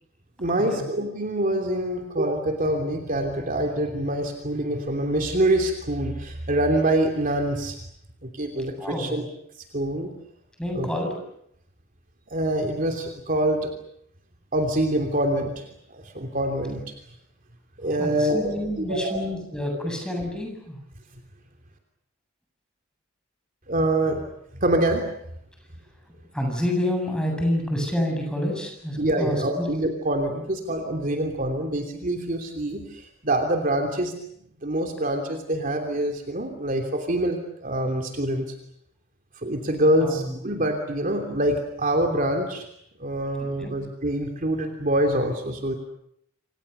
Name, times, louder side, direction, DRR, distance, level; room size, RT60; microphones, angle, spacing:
voice 1, 0.4-7.8 8.2-9.2 9.7-10.1 10.7-10.9 12.3-13.7 14.5-16.9 17.8-19.2 23.7-24.2 24.5-25.0 29.0-34.2 34.6-38.5 39.4-42.7 43.0-45.7, right 1 dB, 40° right, 4 dB, 3.1 m, -25 dB
voice 2, 8.8-9.2 10.6-11.2 18.0-20.8 26.3-29.7 40.0-40.3 43.4-43.8, left 1 dB, 5° left, 2 dB, 7.8 m, -28 dB
27.5 x 27.5 x 6.9 m, 0.74 s
head